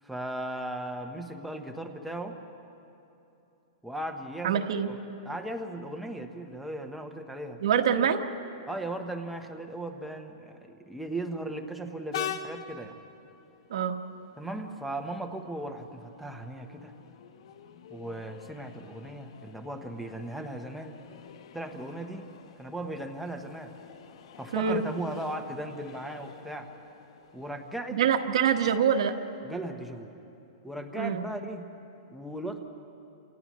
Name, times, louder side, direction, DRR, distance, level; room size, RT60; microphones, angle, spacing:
voice 1, 0.0-2.4 3.8-4.6 4.9-5.0 5.2-7.6 8.7-12.9 14.4-16.9 17.9-20.9 21.5-23.7 24.4-26.7 27.3-28.0 29.4-30.1 30.6-31.7 32.1-32.6, right 1 dB, ahead, 3 dB, 0.9 m, -37 dB
voice 2, 4.4-4.9 7.6-8.2 13.7-14.0 24.5-24.8 27.9-29.1 30.9-31.2, right 8 dB, 65° right, 5 dB, 1.4 m, -25 dB
Train, 12.1-29.4, left 9 dB, 60° left, 1.1 m, -46 dB
29.5 x 28.0 x 3.1 m, 2.9 s
hypercardioid pair, 165°, 3 cm